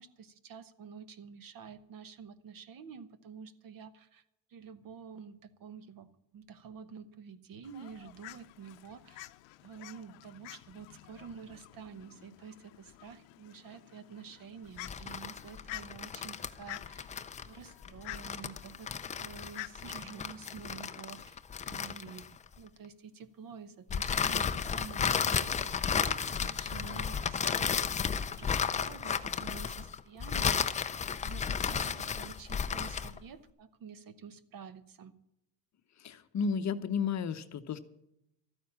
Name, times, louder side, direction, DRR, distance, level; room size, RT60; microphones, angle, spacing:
voice 1, 0.0-4.2 4.5-9.3 9.6-17.1 17.4-21.4 21.6-28.0 28.4-35.1, right 6 dB, 45° right, 13 dB, 1.1 m, -49 dB
Fowl, 7.6-21.3, left 17 dB, 65° left, 0.8 m, -50 dB
sound 1, 14.8-22.6 23.9-33.2, left 6 dB, 15° left, 0.4 m, -33 dB
voice 2, 36.0-37.8, left 6 dB, 35° left, 9 dB, 0.8 m, -33 dB
13.5 x 9.3 x 7.4 m, 0.82 s
cardioid pair, 120°, 48 cm